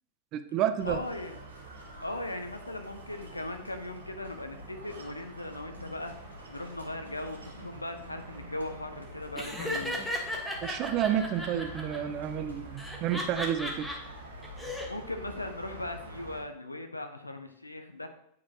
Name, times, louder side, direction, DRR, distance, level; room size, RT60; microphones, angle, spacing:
voice 1, 0.3-1.0 10.6-13.9, right 10 dB, 40° right, 10 dB, 0.5 m, -30 dB
voice 2, 0.8-1.4 2.0-6.1 6.5-10.0 14.9-18.1, left 2 dB, 85° left, 7 dB, 0.7 m, -38 dB
sound 1, 0.8-16.4, right 1 dB, 75° right, 1.1 m, -46 dB
Laughter, 9.4-12.0 12.8-13.9 14.4-14.9, left 1 dB, 5° left, 1.2 m, -35 dB
8.2 x 4.9 x 2.8 m, 0.73 s
figure-of-eight pair, 90°, 0 cm